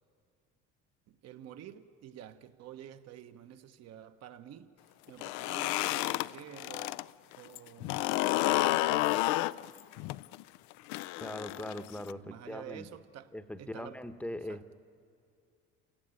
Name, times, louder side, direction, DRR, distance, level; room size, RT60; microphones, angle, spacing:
voice 1, 1.1-4.7 5.1-7.1 7.4-9.2 12.1-14.0 14.5-14.6, right 10 dB, 60° right, 1.2 m, -49 dB
sound 1, 5.1-7.0 7.3-12.1, left 18 dB, 75° left, 0.5 m, -30 dB
voice 2, 11.2-12.9 13.3-14.8, left 1 dB, 5° left, 0.9 m, -41 dB
27.5 x 16.5 x 9.1 m
supercardioid pair, 100°, 29 cm